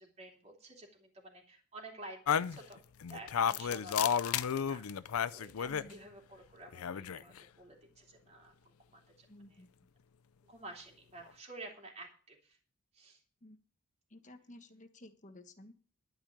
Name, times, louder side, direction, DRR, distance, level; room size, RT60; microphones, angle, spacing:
voice 1, 0.0-2.8 3.1-9.3 10.4-12.6 12.9-13.2, right 2 dB, 30° right, 1 dB, 3.1 m, -51 dB
sound 1, 2.3-5.9 6.7-7.4, left 8 dB, 90° left, 0.5 m, -32 dB
voice 2, 5.7-6.0 9.3-9.9 13.4-13.6 14.1-15.7, left 1 dB, 35° left, 6 dB, 1.3 m, -54 dB
12.0 x 5.1 x 8.7 m, 0.42 s
head